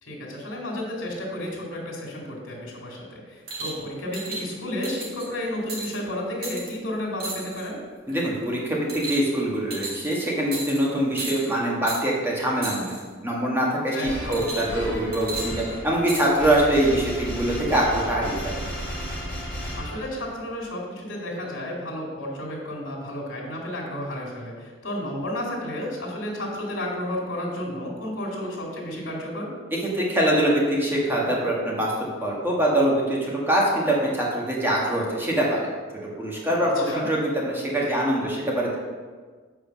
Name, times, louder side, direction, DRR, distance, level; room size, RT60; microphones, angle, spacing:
voice 1, 0.0-7.8 13.9-14.4 19.8-29.5 36.8-37.1, left 1 dB, 75° left, -2 dB, 2.3 m, -32 dB
sound 1, 3.5-3.8 4.1-4.4 4.8-5.3 5.7-5.9 6.4-6.7 7.2-7.7 8.1-8.4 8.9-9.4 9.7-10.1 10.5-10.8 11.2-11.5 11.9-12.0 12.6-13.0 14.3-14.8 15.1-16.2 17.1-17.2, right 3 dB, 50° right, 2.2 m, -34 dB
voice 2, 8.1-12.9 13.2-18.6 29.8-35.7 36.0-38.8, right 1 dB, 10° right, -4 dB, 1.8 m, -24 dB
sound 2, 14.0-20.4, equal, 5° left, 1.7 m, -34 dB
7.8 x 4.9 x 6.0 m, 1.5 s
head